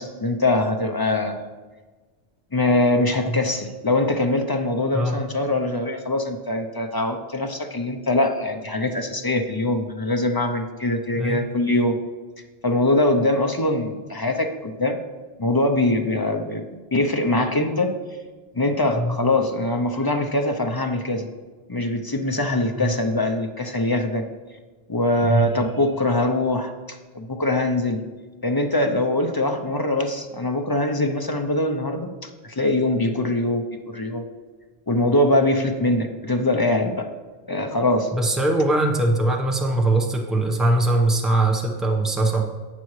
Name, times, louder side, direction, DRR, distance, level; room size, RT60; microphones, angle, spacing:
voice 1, 0.0-1.4 2.5-12.0 12.6-15.0 15.4-16.6 16.9-17.9 18.5-21.3 21.7-24.2 24.9-28.0 28.4-34.2 34.9-37.1 37.5-38.1, left 2 dB, 25° left, 5 dB, 0.5 m, -23 dB
voice 2, 38.1-42.4, right 2 dB, ahead, 1 dB, 0.9 m, -21 dB
11.0 x 8.5 x 3.2 m, 1.3 s
omnidirectional pair, 1.1 m